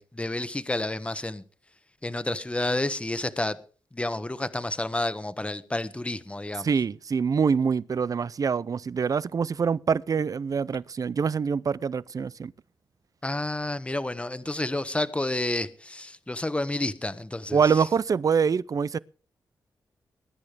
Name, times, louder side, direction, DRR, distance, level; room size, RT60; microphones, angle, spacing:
voice 1, 0.0-1.4 2.0-3.6 3.9-6.7 13.2-17.7, left 2 dB, 15° left, 1.1 m, -30 dB
voice 2, 6.6-12.5 17.5-19.0, right 6 dB, 50° right, 0.5 m, -25 dB
21.0 x 9.8 x 3.5 m
cardioid pair, 65°, 8 cm